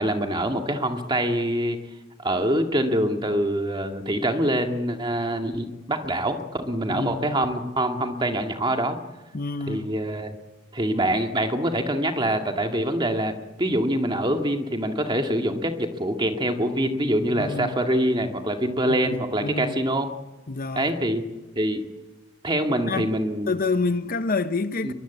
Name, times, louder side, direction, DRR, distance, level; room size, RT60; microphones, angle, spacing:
voice 1, 0.0-1.8 2.2-9.0 9.7-10.4 10.7-20.1 20.8-21.2 21.6-21.8 22.4-23.5 24.8-24.9, right 1 dB, 20° right, 2.1 m, -25 dB
voice 2, 6.9-7.4 9.3-9.9 17.3-17.8 18.9-19.7 20.5-20.9 22.9-23.1 23.5-24.9, left 3 dB, 40° left, 0.8 m, -28 dB
23.0 x 22.0 x 8.3 m
head